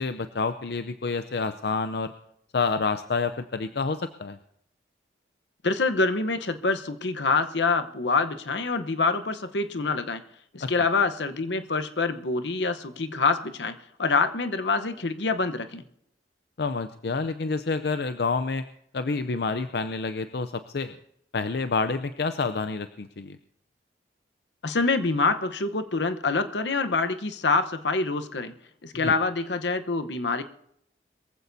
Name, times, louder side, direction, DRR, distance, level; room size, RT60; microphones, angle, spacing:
voice 1, 0.0-2.1 2.5-4.4 10.6-10.7 16.6-18.6 18.9-21.0 21.3-23.4 29.0-29.1, left 4 dB, 65° left, 10 dB, 0.5 m, -28 dB
voice 2, 5.6-10.2 10.5-15.8 24.6-28.5 28.8-30.4, left 3 dB, 80° left, 9 dB, 1.0 m, -26 dB
22.5 x 15.0 x 2.7 m, 0.74 s
head